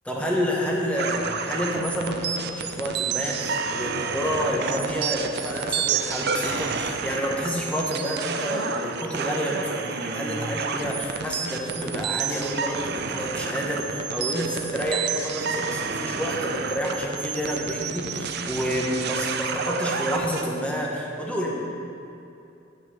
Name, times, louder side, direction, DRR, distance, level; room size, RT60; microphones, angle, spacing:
voice 1, 0.0-21.5, equal, 5° left, -3 dB, 1.4 m, -29 dB
sound 1, 1.0-20.4, right 6 dB, 60° right, 0.6 m, -30 dB
8.4 x 6.2 x 7.5 m, 2.7 s
head